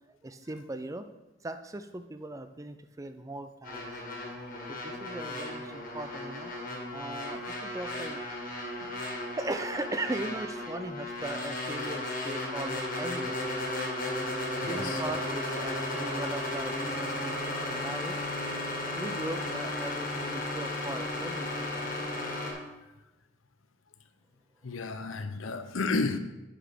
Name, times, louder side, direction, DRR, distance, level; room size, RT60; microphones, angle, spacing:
voice 1, 0.1-1.1 1.4-3.9 4.7-6.5 6.9-8.2 8.8-9.0 9.4-13.4 14.7-18.2 18.9-21.9 24.8-24.9, right 2 dB, 15° right, 0.4 m, -39 dB
sound 1, 3.6-22.5, left 1 dB, 45° left, 1.8 m, -35 dB
voice 2, 14.6-15.0 24.6-26.2, left 3 dB, 85° left, 0.7 m, -32 dB
7.9 x 6.0 x 5.1 m
head